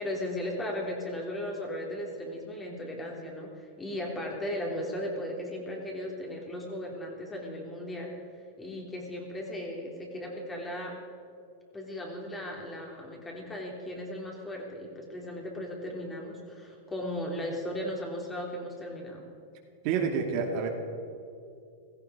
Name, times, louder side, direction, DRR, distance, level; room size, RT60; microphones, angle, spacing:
voice 1, 0.0-8.2 8.6-11.0 11.7-19.2, left 1 dB, 15° left, 0 dB, 3.3 m, -36 dB
voice 2, 19.8-20.7, right 6 dB, 50° right, 2 dB, 2.4 m, -28 dB
16.5 x 14.5 x 5.0 m, 2.5 s
hypercardioid pair, 125°, 0 cm